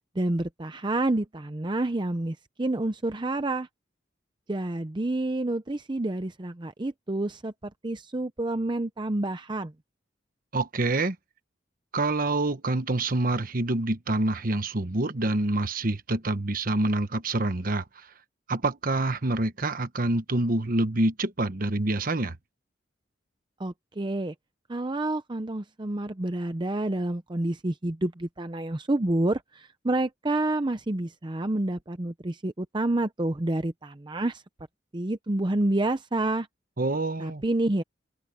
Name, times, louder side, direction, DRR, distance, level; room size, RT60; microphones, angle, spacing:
voice 1, 0.2-3.7 4.5-9.7 23.6-24.3 24.7-34.4 34.9-36.5 37.2-37.8, right 2 dB, 25° right, 0.7 m, -28 dB
voice 2, 10.5-11.2 11.9-18.1 18.5-22.4 36.8-37.4, right 2 dB, 50° right, 1.2 m, -26 dB
head